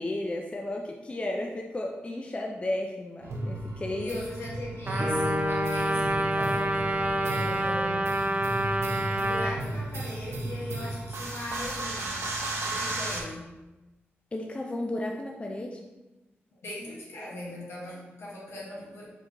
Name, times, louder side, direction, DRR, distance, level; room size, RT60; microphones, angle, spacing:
voice 1, 0.0-4.1 14.3-15.9, left 1 dB, 25° left, 0 dB, 0.5 m, -33 dB
sound 1, 3.2-13.2, right 1 dB, 85° right, 0.7 m, -35 dB
voice 2, 3.9-8.2 9.1-12.2 12.6-13.5 16.5-19.0, left 1 dB, 75° left, -4 dB, 1.4 m, -39 dB
Trumpet, 4.9-9.5, right 1 dB, 40° right, 0.6 m, -28 dB
sound 2, 5.0-9.3, left 1 dB, 20° right, 1.5 m, -35 dB
4.6 x 3.8 x 2.9 m, 1.1 s
cardioid pair, 80°, 4 cm